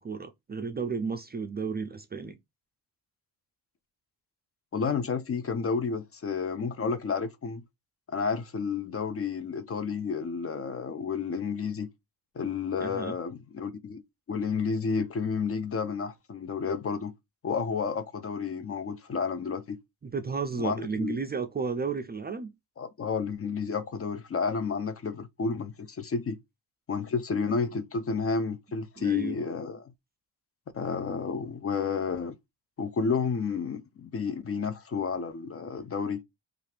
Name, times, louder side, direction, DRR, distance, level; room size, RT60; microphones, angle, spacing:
voice 1, 0.0-2.4 12.8-13.1 20.0-22.5 29.0-29.4, right 5 dB, 25° right, 0.4 m, -33 dB
voice 2, 4.7-7.6 8.1-11.9 12.4-14.0 14.3-17.1 17.4-19.8 20.6-21.2 22.8-26.4 26.9-29.9 30.7-32.4 32.8-36.2, left 5 dB, 35° left, 0.5 m, -31 dB
2.6 x 2.4 x 3.2 m
cardioid pair, 70°, 43 cm